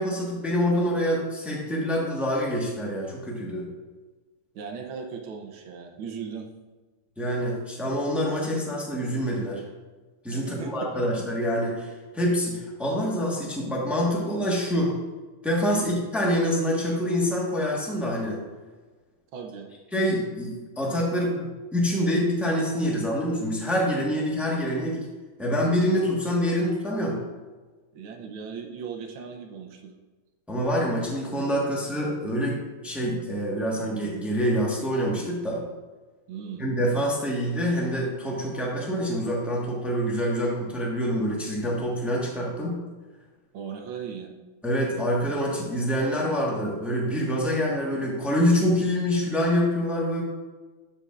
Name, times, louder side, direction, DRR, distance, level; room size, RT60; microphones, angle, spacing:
voice 1, 0.0-3.7 7.2-9.6 10.2-15.0 15.4-18.4 19.9-25.1 25.4-27.2 30.5-35.6 36.6-42.8 44.6-50.2, equal, ahead, -3 dB, 0.9 m, -26 dB
voice 2, 4.5-6.5 10.3-10.7 15.7-15.9 19.3-19.7 27.9-29.9 36.3-36.6 43.5-44.3, right 6 dB, 75° right, 2 dB, 1.6 m, -37 dB
12.0 x 5.3 x 2.5 m, 1.3 s
omnidirectional pair, 2.4 m